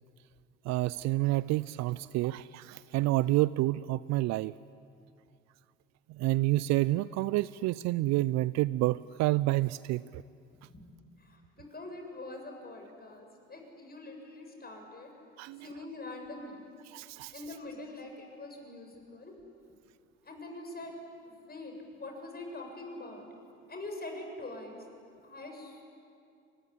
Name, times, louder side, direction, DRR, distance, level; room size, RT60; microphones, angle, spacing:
voice 1, 0.6-4.5 6.1-10.2 15.4-15.7 16.9-17.3, right 18 dB, 65° right, 18 dB, 0.5 m, -29 dB
voice 2, 11.2-15.1 15.6-16.7 17.3-19.3 20.2-20.9 21.2-21.7 22.0-23.2 23.7-24.8 25.2-25.9, left 2 dB, 35° left, 3 dB, 7.4 m, -44 dB
25.5 x 20.5 x 10.0 m, 2.4 s
hypercardioid pair, 55°, 29 cm